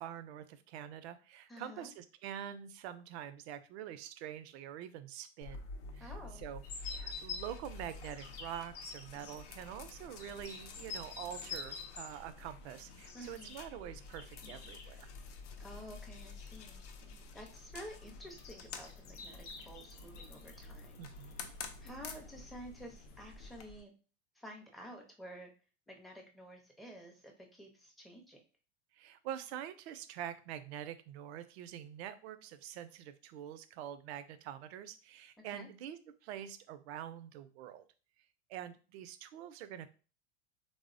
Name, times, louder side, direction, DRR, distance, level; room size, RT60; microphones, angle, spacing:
voice 1, 0.0-5.7 5.9-6.1 6.4-6.6 6.9-15.1 21.0-21.5 28.9-37.9 38.5-39.9, right 10 dB, 60° right, 12 dB, 0.5 m, -45 dB
voice 2, 1.5-1.9 6.0-6.4 13.1-13.6 15.6-16.8 17.3-21.0 21.8-23.9 24.4-25.5 25.9-28.4 35.4-35.7, equal, ahead, 1 dB, 0.5 m, -51 dB
sound 1, 5.4-23.6, left 4 dB, 80° left, 0.6 m, -50 dB
sound 2, 6.6-23.8, left 4 dB, 40° left, 0.7 m, -50 dB
3.3 x 2.0 x 2.5 m, 0.36 s
hypercardioid pair, 105°, 36 cm